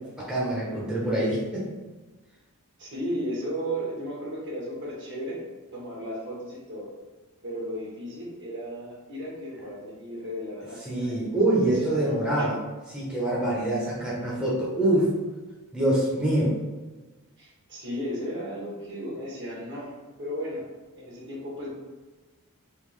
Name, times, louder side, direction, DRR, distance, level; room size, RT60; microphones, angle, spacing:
voice 1, 0.3-1.7 10.9-12.6 12.9-15.1 15.7-16.6, right 1 dB, 5° right, -7 dB, 0.7 m, -25 dB
voice 2, 2.8-5.4 5.7-6.9 7.4-11.2 11.8-12.6 17.4-19.9 20.2-20.7 20.9-21.7, equal, 55° right, -5 dB, 1.3 m, -35 dB
3.5 x 2.9 x 3.2 m, 1.3 s
head